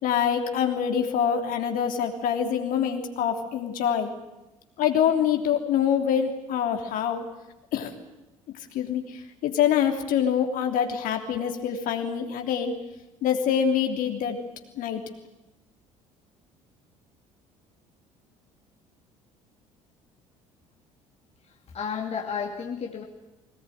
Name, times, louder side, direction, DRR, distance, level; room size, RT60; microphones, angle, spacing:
voice 1, 0.0-4.1 4.8-7.2 7.7-7.9 8.7-12.8 13.2-14.4 14.8-15.0, left 8 dB, 55° left, 4 dB, 3.2 m, -25 dB
voice 2, 21.4-23.0, left 6 dB, 40° left, 2 dB, 2.6 m, -32 dB
22.0 x 19.0 x 9.3 m, 1.0 s
figure-of-eight pair, 55°, 17 cm